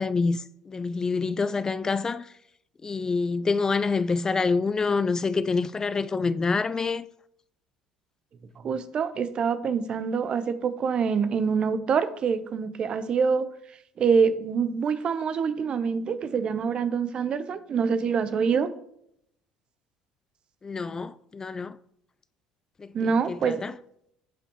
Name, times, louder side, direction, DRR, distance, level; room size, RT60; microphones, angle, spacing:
voice 1, 0.0-2.3 2.8-7.1 20.6-21.8 22.8-23.7, left 4 dB, 25° left, 0.4 m, -27 dB
voice 2, 8.6-13.5 14.0-18.7 22.9-23.6, right 6 dB, 45° right, 0.8 m, -25 dB
13.0 x 5.2 x 3.1 m
hypercardioid pair, 60°, 2 cm